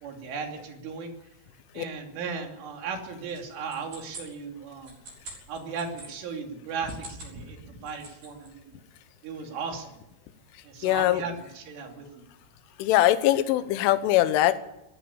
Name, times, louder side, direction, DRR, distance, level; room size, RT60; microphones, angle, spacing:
voice 1, 0.0-1.1 1.7-4.9 5.5-8.7 9.2-10.0 10.6-12.2, right 5 dB, 75° right, 3 dB, 5.3 m, -36 dB
sound 1, 3.3-6.1 6.7-7.4 7.7-8.5, right 3 dB, 45° right, 8.1 m, -45 dB
voice 2, 10.8-11.2 12.8-14.6, left 14 dB, 80° left, 11 dB, 3.5 m, -22 dB
19.0 x 15.5 x 8.9 m, 0.92 s
omnidirectional pair, 5.7 m